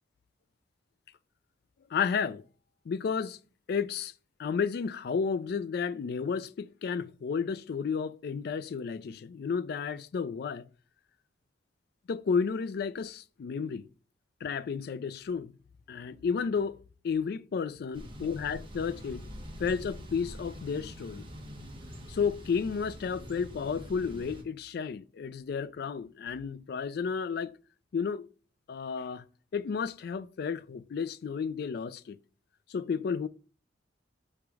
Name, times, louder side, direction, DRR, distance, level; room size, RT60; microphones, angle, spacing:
voice 1, 1.9-2.4 2.9-3.4 3.7-4.1 4.4-10.7 12.1-13.8 14.4-15.5 15.9-16.8 17.0-19.2 19.6-21.3 22.1-27.5 27.9-28.3 28.7-29.2 29.5-32.2 32.7-33.3, left 6 dB, 55° left, 0.3 m, -32 dB
Thunder / Bicycle, 17.9-24.4, equal, 25° right, 0.9 m, -45 dB
5.0 x 3.1 x 3.3 m
head